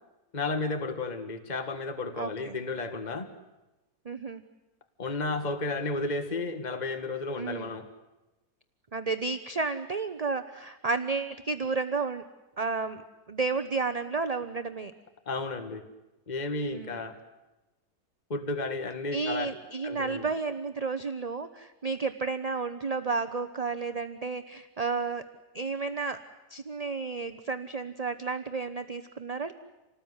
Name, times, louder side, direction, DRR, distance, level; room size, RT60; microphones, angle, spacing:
voice 1, 0.3-3.3 5.0-7.9 15.3-15.8 16.3-17.2 18.3-19.5 19.8-20.3, left 3 dB, 25° left, 7 dB, 1.8 m, -32 dB
voice 2, 2.2-2.6 4.0-4.4 7.4-7.7 8.9-12.2 12.6-14.9 16.7-17.0 19.1-25.3 25.5-26.2 26.5-29.5, right 4 dB, 30° right, 9 dB, 0.8 m, -32 dB
27.5 x 19.0 x 9.7 m, 1.1 s
omnidirectional pair, 1.8 m